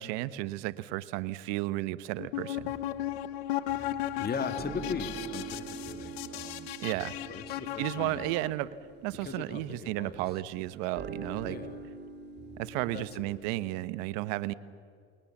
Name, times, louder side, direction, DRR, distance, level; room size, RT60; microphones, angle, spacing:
voice 1, 0.0-2.7 6.8-7.2 7.8-8.7 9.0-11.6 12.6-14.5, right 17 dB, 75° right, 16 dB, 1.1 m, -33 dB
sound 1, 2.2-8.5, left 13 dB, 85° left, 1.3 m, -36 dB
sound 2, 2.5-13.5, right 5 dB, 35° right, 3.6 m, -45 dB
voice 2, 4.2-6.7 7.3-8.3 9.2-10.2 11.4-11.8 12.9-13.3, left 5 dB, 30° left, 9 dB, 2.2 m, -39 dB
29.0 x 21.0 x 7.3 m, 2.2 s
supercardioid pair, 90°, 30 cm